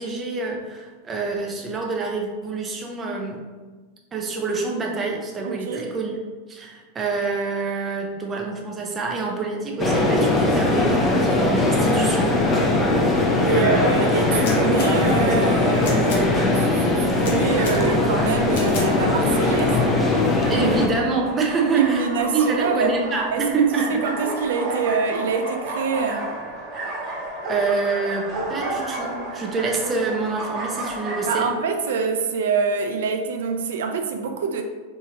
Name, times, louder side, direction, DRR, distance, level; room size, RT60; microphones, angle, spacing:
voice 1, 0.0-3.4 4.1-6.2 6.5-12.3 13.3-13.8 20.5-24.1 27.5-31.5, right 4 dB, 20° right, 0 dB, 0.6 m, -26 dB
voice 2, 5.4-5.8 13.4-19.9 21.7-22.9 23.3-26.3 31.3-34.6, right 5 dB, 85° right, 5 dB, 0.4 m, -25 dB
sound 1, 9.8-20.9, left 2 dB, 20° left, 0.5 m, -20 dB
sound 2, 14.3-14.9 15.7-16.2 17.1-17.8 18.5-18.9, left 3 dB, 70° left, 1.1 m, -34 dB
sound 3, 16.8-31.5, right 2 dB, 40° right, 1.4 m, -33 dB
4.8 x 2.6 x 2.8 m, 1.4 s
supercardioid pair, 140°, 0 cm